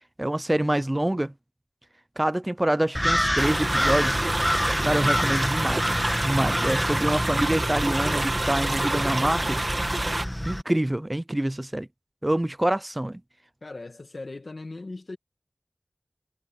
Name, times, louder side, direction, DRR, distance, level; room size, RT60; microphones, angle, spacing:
voice 1, 0.2-1.3 2.2-4.3 4.8-9.6 10.4-11.9 12.2-13.2, right 1 dB, 25° right, 0.5 m, -26 dB
sound 1, 2.9-10.6, equal, 10° left, 1.6 m, -27 dB
sound 2, 3.4-10.2, right 2 dB, 55° right, 2.3 m, -28 dB
voice 2, 13.6-15.2, left 2 dB, 75° left, 1.7 m, -38 dB
wide cardioid pair, 45°, 0 cm